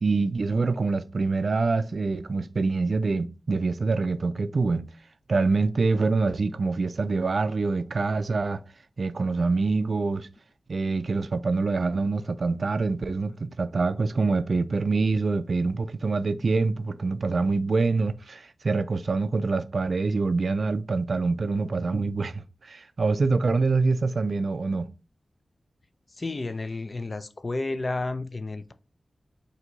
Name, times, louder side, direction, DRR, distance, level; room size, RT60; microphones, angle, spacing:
voice 1, 0.0-4.8 5.3-8.6 9.0-10.3 10.7-24.9, right 3 dB, 60° right, 0.3 m, -25 dB
voice 2, 26.1-28.7, left 2 dB, 40° left, 0.4 m, -31 dB
4.4 x 2.6 x 3.9 m
wide cardioid pair, 80°, 0 cm